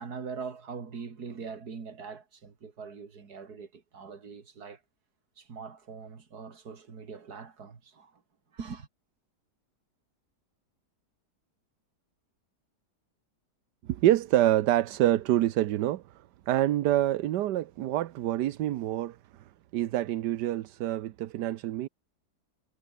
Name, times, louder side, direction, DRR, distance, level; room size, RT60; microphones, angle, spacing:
voice 1, 0.0-4.8 5.4-8.1 8.5-8.9, right 5 dB, 65° right, 2.8 m, -42 dB
voice 2, 13.8-16.0 16.5-19.2 19.7-21.9, right 13 dB, 80° right, 1.4 m, -26 dB
omnidirectional pair, 1.8 m